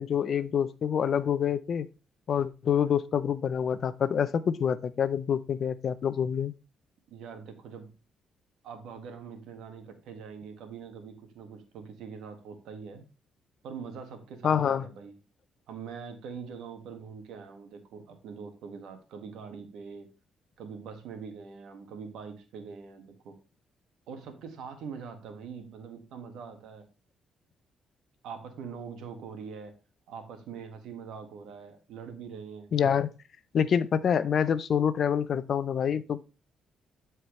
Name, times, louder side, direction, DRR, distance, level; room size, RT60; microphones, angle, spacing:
voice 1, 0.0-1.9 2.3-6.5 14.4-14.8 32.7-33.1 33.5-36.2, left 8 dB, 55° left, 0.6 m, -26 dB
voice 2, 7.1-7.9 8.6-13.0 13.6-15.1 15.7-20.1 20.6-23.4 24.1-26.9 28.2-29.7 30.1-32.7, right 6 dB, 85° right, 1.7 m, -43 dB
11.5 x 4.5 x 3.2 m
cardioid pair, 90°, 0 cm